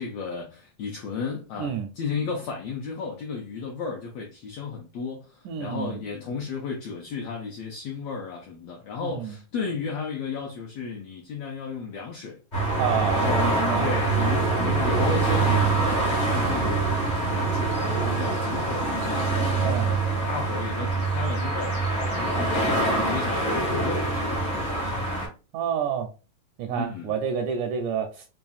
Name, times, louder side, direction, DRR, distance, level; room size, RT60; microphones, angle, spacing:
voice 1, 0.0-12.4 13.1-16.8 17.3-25.2 26.7-27.1, left 5 dB, 85° left, 1.5 m, -34 dB
voice 2, 5.5-6.0 9.0-9.3 12.8-13.9 19.6-19.9 25.5-26.1 26.6-28.2, right 7 dB, 80° right, 1.8 m, -29 dB
sound 1, 12.5-25.3, right 3 dB, 60° left, 0.5 m, -24 dB
5.5 x 2.3 x 2.3 m
omnidirectional pair, 3.8 m